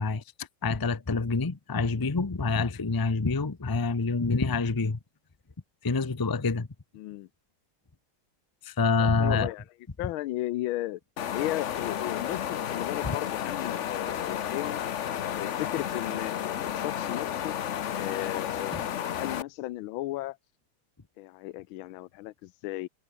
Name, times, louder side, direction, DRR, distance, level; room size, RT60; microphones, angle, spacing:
voice 1, 0.0-5.0 5.8-6.7 8.6-9.5 13.0-13.2, left 4 dB, 30° left, 0.3 m, -27 dB
voice 2, 6.9-7.3 9.0-9.6 10.0-11.0 11.3-14.8 15.3-17.6 18.0-18.8 19.1-20.4 21.2-22.9, left 16 dB, 80° left, 1.5 m, -35 dB
sound 1, 11.2-19.4, left 10 dB, 65° left, 0.7 m, -32 dB
omnidirectional pair, 2.3 m